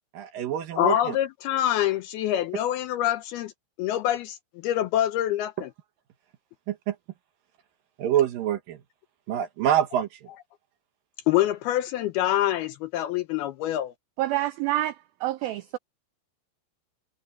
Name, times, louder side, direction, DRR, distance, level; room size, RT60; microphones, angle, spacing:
voice 1, 0.1-1.2 6.7-7.0 8.0-8.8 9.3-10.2, right 10 dB, 65° right, 2.5 m, -26 dB
voice 2, 0.8-3.5 3.8-4.4 4.6-5.7 11.3-13.9, left 12 dB, 75° left, 2.4 m, -25 dB
voice 3, 14.2-15.0 15.2-15.8, right 15 dB, 85° right, 2.1 m, -27 dB
omnidirectional pair, 5.1 m